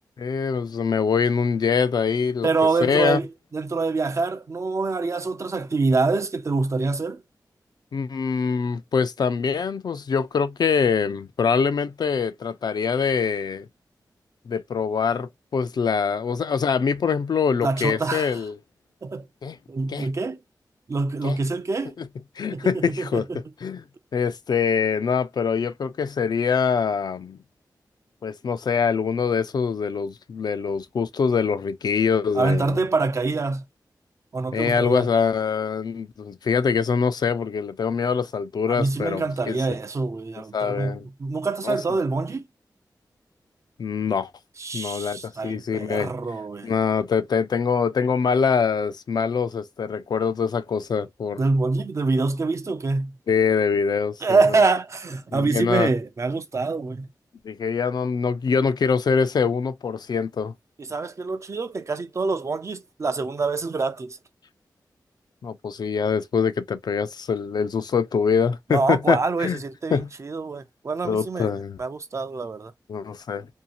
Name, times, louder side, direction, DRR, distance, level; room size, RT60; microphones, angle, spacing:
voice 1, 0.2-2.5 2.8-3.2 7.9-13.7 14.5-18.6 19.4-19.6 19.9-20.1 21.2-21.4 22.0-22.1 22.4-23.3 23.6-23.8 24.1-27.4 28.2-32.8 34.5-39.6 40.5-41.0 41.6-41.8 43.8-44.3 44.7-46.1 46.6-51.4 53.3-54.6 55.3-55.9 57.4-60.5 65.4-69.6 69.9-70.1 71.0-71.8 72.9-73.5, left 6 dB, 70° left, 0.4 m, -24 dB
voice 2, 2.4-7.2 17.6-18.3 19.0-19.3 19.7-20.4 20.9-22.0 22.5-23.4 32.3-33.6 34.3-35.1 38.7-42.4 44.6-46.8 51.4-53.2 54.2-57.1 60.8-64.2 68.7-71.5 71.8-72.7, right 3 dB, 40° right, 0.5 m, -25 dB
2.7 x 2.3 x 2.8 m
wide cardioid pair, 95°, 7 cm